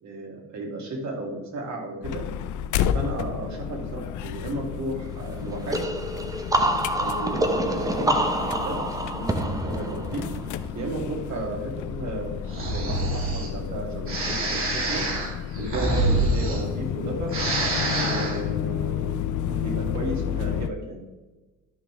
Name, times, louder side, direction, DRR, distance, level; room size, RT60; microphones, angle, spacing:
voice 1, 0.0-2.3 2.9-5.8 6.9-10.2 10.7-15.1 15.6-17.3 18.0-21.0, right 2 dB, 60° right, 0 dB, 2.6 m, -33 dB
sound 1, 2.0-20.7, left 9 dB, 70° left, 0.6 m, -31 dB
sound 2, 5.7-11.3, right 1 dB, 10° right, 0.7 m, -27 dB
Breathing, 12.5-13.5 14.1-17.0 17.2-18.4, right 2 dB, 40° right, 2.3 m, -26 dB
12.0 x 5.7 x 3.4 m, 1.2 s
cardioid pair, 135°, 32 cm